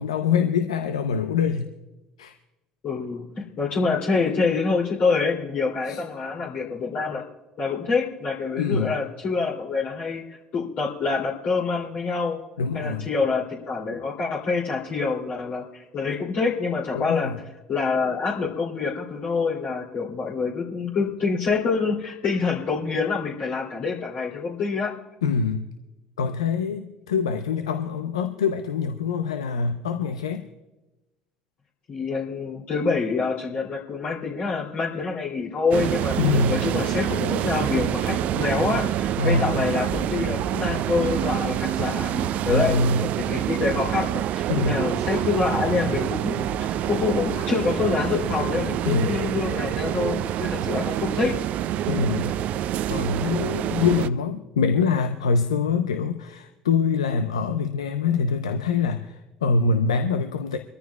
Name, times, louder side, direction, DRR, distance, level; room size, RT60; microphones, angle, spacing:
voice 1, 0.0-1.7 2.2-2.4 5.9-6.0 8.6-9.0 12.6-13.1 16.9-17.4 25.2-25.7 26.2-30.5 36.2-36.6 39.2-39.5 42.5-43.0 44.5-44.8 48.8-49.2 50.7-50.8 51.9-52.4 52.9-60.6, left 5 dB, 85° left, 8 dB, 0.7 m, -24 dB
voice 2, 2.8-7.2 7.6-12.4 12.7-17.3 17.7-24.9 31.9-36.2 36.5-51.3, left 4 dB, 50° left, -4 dB, 2.8 m, -26 dB
sound 1, 35.7-54.1, right 11 dB, 55° right, 0.5 m, -26 dB
25.0 x 14.0 x 2.3 m, 1.0 s
hypercardioid pair, 65°, 3 cm